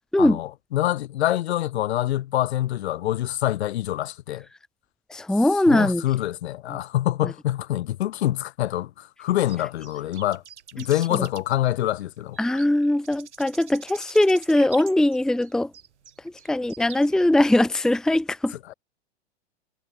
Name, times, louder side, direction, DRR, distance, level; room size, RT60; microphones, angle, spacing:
voice 1, 0.2-4.5 5.7-10.4 10.7-12.6 18.7-18.8, left 13 dB, 65° left, 2.4 m, -26 dB
voice 2, 5.1-6.0 12.4-15.7 16.5-18.6, left 1 dB, ahead, 0.9 m, -21 dB
sound 1, 9.5-17.3, right 8 dB, 80° right, 3.3 m, -46 dB
hypercardioid pair, 100°, 35 cm